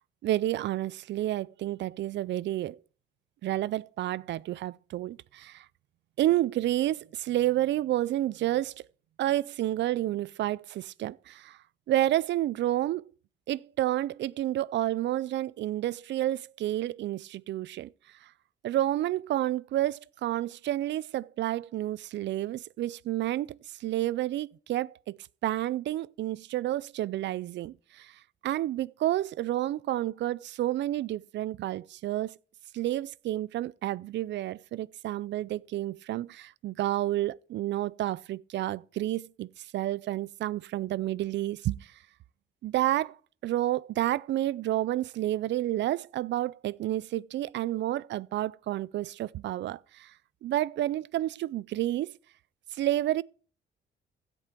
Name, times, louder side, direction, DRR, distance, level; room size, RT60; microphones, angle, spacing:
voice 1, 0.2-2.8 3.4-5.7 6.2-8.8 9.2-11.6 11.9-13.1 13.5-17.9 18.2-18.3 18.6-25.2 25.4-28.2 28.4-32.4 32.7-41.9 42.6-43.2 43.4-50.1 50.4-52.2 52.7-53.2, right 14 dB, 65° right, 0.4 m, -30 dB
15.5 x 5.3 x 4.5 m
cardioid pair, 90°, 20 cm